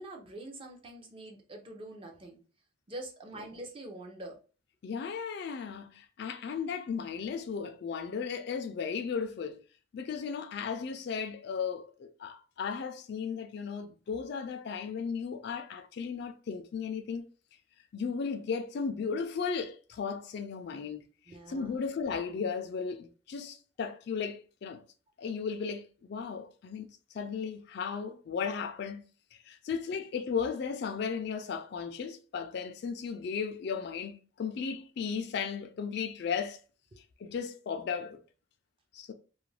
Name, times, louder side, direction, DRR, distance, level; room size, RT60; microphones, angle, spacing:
voice 1, 0.0-2.4 2.9-4.4 21.3-21.8, right 1 dB, 25° right, 0.5 m, -45 dB
voice 2, 4.8-9.6 9.9-17.3 17.9-21.1 21.5-24.8 25.2-26.9 27.1-29.0 29.3-36.6 37.2-38.2 38.9-39.1, left 6 dB, 55° left, 0.3 m, -35 dB
2.4 x 2.2 x 3.1 m
head